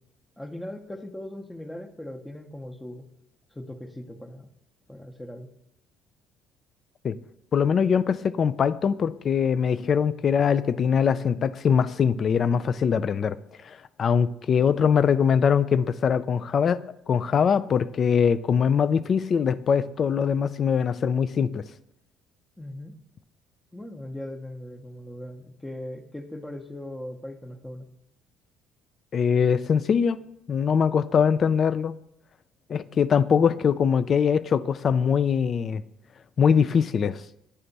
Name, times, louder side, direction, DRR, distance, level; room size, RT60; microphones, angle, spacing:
voice 1, 0.4-3.0 3.5-4.5 4.9-5.5 22.6-23.0 23.7-27.9, left 1 dB, 10° left, 0.8 m, -39 dB
voice 2, 7.5-13.4 13.6-16.8 17.1-21.6 29.1-30.2 30.5-31.9 32.7-35.8 36.4-37.2, left 7 dB, 45° left, 0.3 m, -22 dB
9.8 x 3.3 x 4.0 m
supercardioid pair, 90°, 0 cm